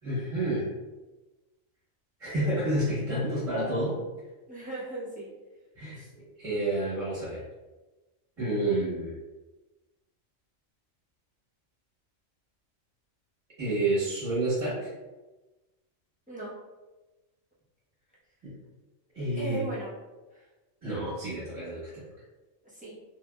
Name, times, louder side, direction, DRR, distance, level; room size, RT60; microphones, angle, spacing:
voice 1, 0.0-0.7 2.2-4.0 5.7-6.0 6.4-7.4 8.4-9.1 13.6-14.9 18.4-18.6 19.1-19.7 20.8-22.0, right 1 dB, 25° right, -10 dB, 1.3 m, -29 dB
voice 2, 4.5-5.3 6.0-6.1 16.3-16.6 19.2-19.9 20.3-20.4 22.6-22.9, right 2 dB, 10° right, -9 dB, 0.6 m, -38 dB
2.7 x 2.7 x 2.3 m, 1.2 s
omnidirectional pair, 1.4 m